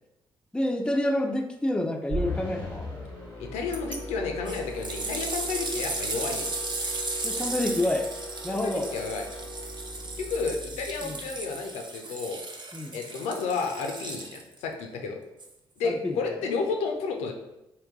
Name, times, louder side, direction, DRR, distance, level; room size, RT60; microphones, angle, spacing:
voice 1, 0.5-2.9 7.2-8.1 8.4-8.9 11.0-11.2 12.7-12.9 15.8-16.4, left 1 dB, 10° left, 4 dB, 0.5 m, -28 dB
sound 1, 2.1-11.5, left 1 dB, 90° right, 1.2 m, -39 dB
voice 2, 3.4-6.5 8.5-9.2 10.2-12.4 12.9-15.2 15.8-17.3, left 4 dB, 70° left, 3 dB, 0.5 m, -31 dB
sound 2, 3.7-4.0 4.4-14.6 15.4-15.5, right 3 dB, 40° right, 0.7 m, -35 dB
3.7 x 2.2 x 3.6 m, 0.92 s
hypercardioid pair, 40°, 12 cm